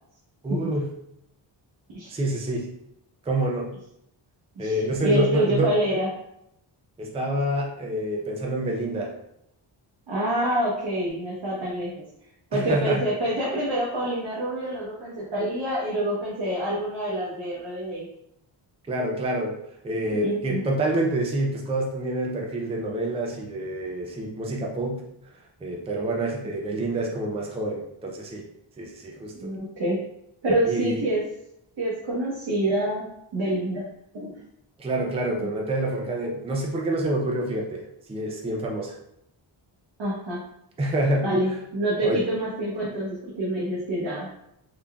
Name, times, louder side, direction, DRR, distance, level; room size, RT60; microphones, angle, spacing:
voice 1, 0.4-0.9 2.1-2.7 3.3-3.7 4.6-5.7 7.0-9.1 12.5-13.0 18.9-19.6 19.8-25.0 25.6-28.4 28.8-29.5 30.7-31.0 34.8-39.0 40.8-41.3 42.0-42.2, right 1 dB, 15° right, -1 dB, 0.4 m, -27 dB
voice 2, 5.0-6.1 10.1-12.0 12.5-18.1 20.2-20.6 29.4-30.0 30.4-31.2 31.8-33.1 33.3-33.8 34.1-34.4 35.4-35.5 40.0-40.4 41.2-44.3, right 1 dB, 65° right, -6 dB, 1.1 m, -26 dB
3.8 x 3.4 x 2.3 m, 0.78 s
wide cardioid pair, 170°, 47 cm